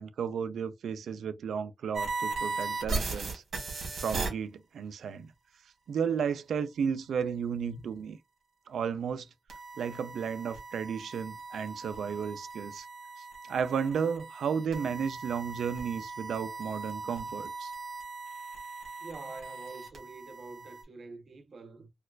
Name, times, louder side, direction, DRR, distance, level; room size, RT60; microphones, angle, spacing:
voice 1, 0.0-3.4 4.0-5.3 5.9-8.2 8.7-9.3 9.8-12.9 13.2-17.7, right 7 dB, 85° right, 0.4 m, -33 dB
sound 1, 1.9-4.3 9.5-20.8, right 3 dB, 65° right, 1.5 m, -38 dB
voice 2, 19.0-21.9, right 3 dB, 45° right, 0.7 m, -46 dB
4.3 x 2.3 x 2.2 m
wide cardioid pair, 165°, 0 cm